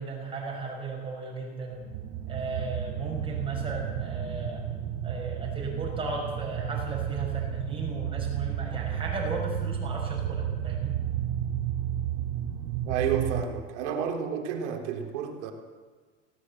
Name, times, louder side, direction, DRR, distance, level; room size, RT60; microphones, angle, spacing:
voice 1, 0.0-1.9 2.3-4.6 5.0-11.0, right 3 dB, 15° right, -1 dB, 6.0 m, -35 dB
sound 1, 1.8-13.4, right 10 dB, 35° right, 1.1 m, -32 dB
voice 2, 12.9-15.5, right 8 dB, 65° right, 3 dB, 3.4 m, -30 dB
19.0 x 18.0 x 7.7 m, 1.4 s
supercardioid pair, 155°, 38 cm